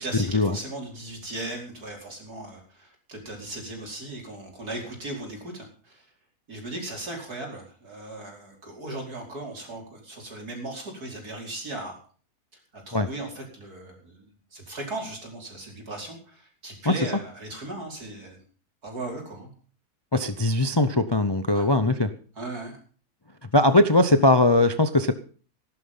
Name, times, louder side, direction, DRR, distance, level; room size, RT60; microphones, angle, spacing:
voice 1, 0.0-6.0 6.5-12.0 12.7-18.4 18.8-19.5 21.5-21.7 22.4-22.8, right 2 dB, 75° right, 0 dB, 5.4 m, -37 dB
voice 2, 20.1-22.1 23.5-25.1, left 2 dB, 30° left, 10 dB, 0.5 m, -20 dB
15.5 x 12.0 x 5.6 m, 0.42 s
omnidirectional pair, 1.6 m